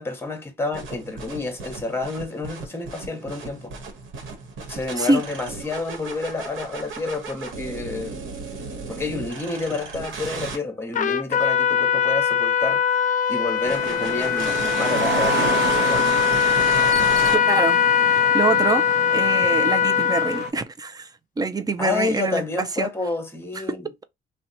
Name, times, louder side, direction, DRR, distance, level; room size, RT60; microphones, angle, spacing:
voice 1, 0.0-3.7 4.7-8.3 8.9-16.2 21.8-23.9, left 3 dB, 10° left, 1.0 m, -29 dB
sound 1, 0.7-10.6 13.7-17.4, right 4 dB, 80° right, 1.1 m, -35 dB
Trumpet, 10.9-20.5, left 8 dB, 40° left, 0.4 m, -21 dB
sound 2, 13.6-20.5, right 6 dB, 60° right, 0.7 m, -30 dB
voice 2, 17.2-17.8 18.1-18.8 19.1-21.1 21.4-22.9, right 3 dB, 20° right, 0.4 m, -25 dB
2.8 x 2.2 x 3.9 m
cardioid pair, 90°, 20 cm